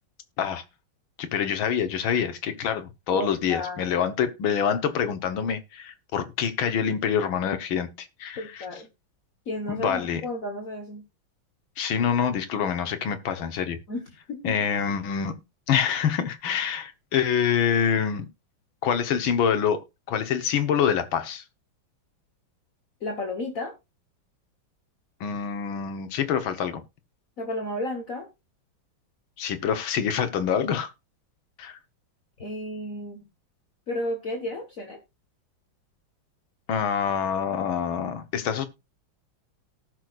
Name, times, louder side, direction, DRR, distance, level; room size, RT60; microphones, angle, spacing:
voice 1, 1.2-8.7 9.7-10.2 11.8-13.8 14.4-15.4 15.7-18.3 18.8-21.4 25.2-26.8 29.4-30.9 31.6-31.8 36.7-38.7, left 7 dB, 80° left, 1.9 m, -26 dB
voice 2, 3.1-4.0 8.4-8.9 9.5-11.0 13.9-14.6 23.0-23.7 27.4-28.3 32.4-33.3 33.9-35.0, left 1 dB, 45° left, 1.6 m, -33 dB
18.0 x 6.1 x 2.5 m
omnidirectional pair, 2.2 m